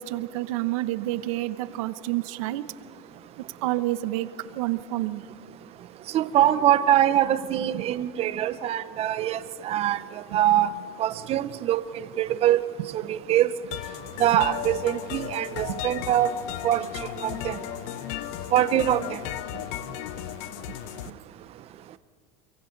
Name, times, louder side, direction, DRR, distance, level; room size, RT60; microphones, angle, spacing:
voice 1, 0.0-2.6 3.6-5.2 7.6-7.8 15.7-15.8 19.5-19.6 19.9-20.0, right 16 dB, 80° right, 13 dB, 1.0 m, -29 dB
voice 2, 6.1-9.4 9.6-10.0 10.3-10.7 11.0-11.8 12.2-12.6 12.9-13.5 14.2-16.3 16.6-16.8 17.2-17.6 18.5-19.2, right 12 dB, 35° right, 13 dB, 0.7 m, -23 dB
sound 1, 13.7-21.1, left 13 dB, 65° left, 0.8 m, -35 dB
28.5 x 23.0 x 4.0 m, 2.2 s
supercardioid pair, 140°, 17 cm